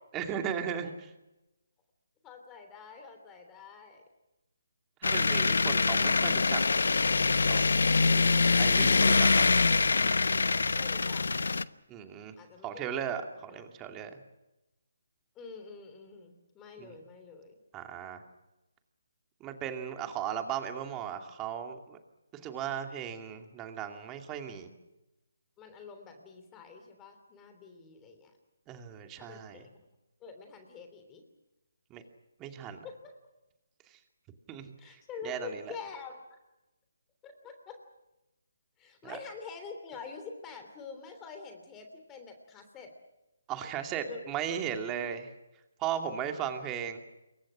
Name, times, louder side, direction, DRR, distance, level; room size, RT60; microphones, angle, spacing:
voice 1, 0.1-1.1 5.0-6.6 7.3-7.7 8.0-9.5 11.9-12.3 12.6-14.2 16.8-16.9 17.7-18.2 19.4-22.0 22.3-24.7 28.7-29.6 31.9-32.0 32.4-32.8 34.5-35.6 39.0-39.2 43.5-45.3 45.8-47.0, right 8 dB, 15° right, 5 dB, 2.4 m, -37 dB
voice 2, 2.2-4.0 10.7-11.3 12.4-12.7 13.2-13.6 15.3-17.6 25.6-28.3 29.2-29.7 30.2-31.2 32.8-33.2 34.8-36.4 37.2-37.8 38.8-42.9 44.0-44.4 46.1-46.4, left 5 dB, 15° left, 6 dB, 3.1 m, -46 dB
sound 1, 5.0-11.6, left 4 dB, 75° left, 1.0 m, -24 dB
27.5 x 23.0 x 6.3 m, 0.98 s
hypercardioid pair, 160°, 0 cm